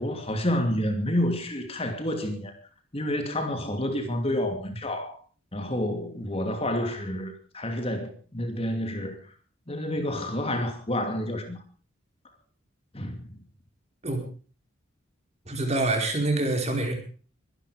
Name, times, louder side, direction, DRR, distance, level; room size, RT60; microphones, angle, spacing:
voice 1, 0.0-2.5 2.9-5.2 5.5-9.2 9.7-11.6 12.9-13.3, left 1 dB, 30° left, 2.6 m, -29 dB
voice 2, 15.5-16.9, right 2 dB, 35° right, 4.8 m, -26 dB
23.5 x 11.5 x 5.0 m
head